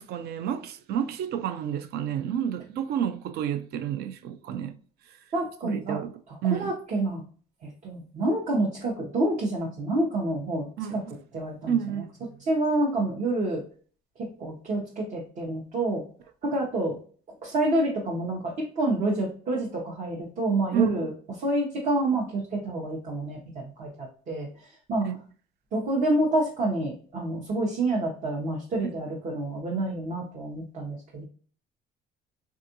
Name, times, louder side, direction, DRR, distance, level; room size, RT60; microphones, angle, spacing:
voice 1, 0.0-4.7 5.6-6.7 10.8-11.1 11.7-12.1 20.7-21.1 25.0-25.2, right 9 dB, 70° right, 0.4 m, -30 dB
voice 2, 5.3-6.0 6.5-7.2 7.6-11.0 11.3-11.7 12.5-13.6 14.2-16.0 16.4-17.0 17.4-21.1 21.4-24.5 24.9-25.1 25.7-31.2, right 2 dB, 50° right, 0.8 m, -28 dB
3.5 x 2.4 x 2.7 m
cardioid pair, 110°, 17 cm